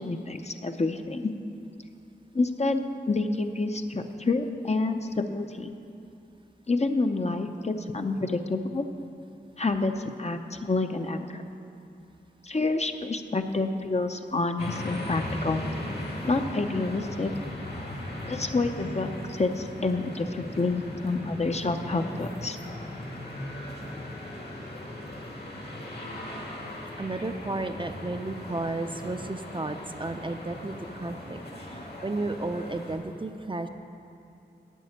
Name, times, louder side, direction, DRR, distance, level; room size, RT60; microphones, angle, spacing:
voice 1, 0.0-1.3 2.3-5.7 6.7-8.9 9.6-11.4 12.4-15.6 16.2-17.3 18.3-22.6, left 3 dB, 40° left, 6 dB, 0.6 m, -28 dB
sound 1, 14.6-33.0, left 1 dB, 65° left, 1.9 m, -38 dB
voice 2, 27.0-33.7, right 2 dB, 30° right, 7 dB, 0.5 m, -33 dB
9.2 x 6.4 x 8.7 m, 2.7 s
wide cardioid pair, 65°, 18 cm